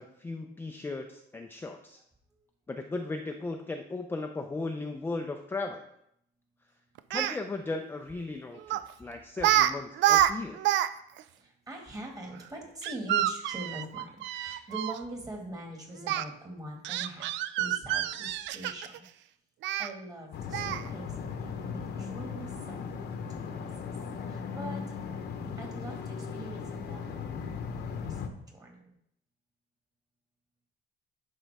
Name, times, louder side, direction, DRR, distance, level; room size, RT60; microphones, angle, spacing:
voice 1, 0.0-2.0 2.7-5.8 7.1-10.7, left 3 dB, 10° left, 4 dB, 0.4 m, -36 dB
Speech, 7.0-7.4 8.7-8.9 9.4-9.7 10.0-10.9 11.2-11.3 12.8-15.0 16.0-16.2 16.8-19.0 19.6-19.9 20.5-20.9, right 12 dB, 90° right, 0.4 m, -27 dB
voice 2, 11.4-19.0 19.8-23.2 23.5-23.7 24.2-24.8 25.6-28.9, right 1 dB, 20° right, 1 dB, 1.8 m, -43 dB
sound 1, 20.3-28.3, left 6 dB, 65° left, 0.9 m, -37 dB
11.0 x 5.2 x 3.4 m, 0.75 s
cardioid pair, 165°, 18 cm